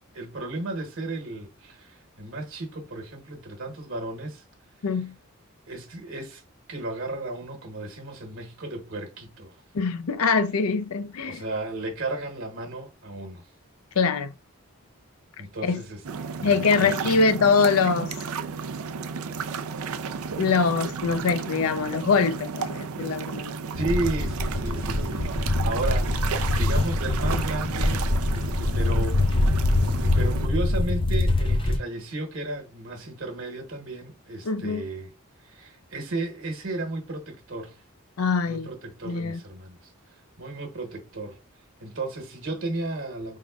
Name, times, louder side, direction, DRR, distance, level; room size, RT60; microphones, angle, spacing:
voice 1, 0.1-4.4 5.7-6.4 6.7-9.5 11.2-13.4 15.4-16.0 16.4-17.2 23.7-26.1 26.6-28.0 28.3-29.2 30.1-35.1 35.4-37.8 38.5-41.4 41.8-43.4, right 2 dB, 65° right, 1.2 m, -34 dB
voice 2, 4.8-5.1 9.7-11.4 14.0-14.3 15.6-15.8 16.4-18.2 20.4-23.6 34.4-34.8 38.2-38.7 39.0-39.4, left 5 dB, 80° left, 0.5 m, -23 dB
sound 1, 16.0-30.5, right 5 dB, 85° right, 0.5 m, -33 dB
sound 2, 23.7-31.8, left 2 dB, 25° left, 0.5 m, -24 dB
5.2 x 3.6 x 2.4 m
head